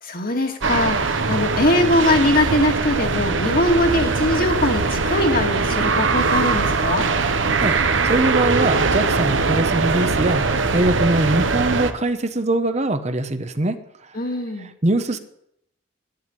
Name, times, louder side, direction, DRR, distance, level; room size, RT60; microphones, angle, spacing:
voice 1, 0.0-7.1 14.1-14.7, left 1 dB, 50° left, 4 dB, 2.2 m, -21 dB
sound 1, 0.6-11.9, right 4 dB, 85° right, 1.1 m, -21 dB
voice 2, 7.3-13.8 14.6-15.2, right 2 dB, 35° right, 9 dB, 1.0 m, -22 dB
10.5 x 10.0 x 9.9 m, 0.76 s
head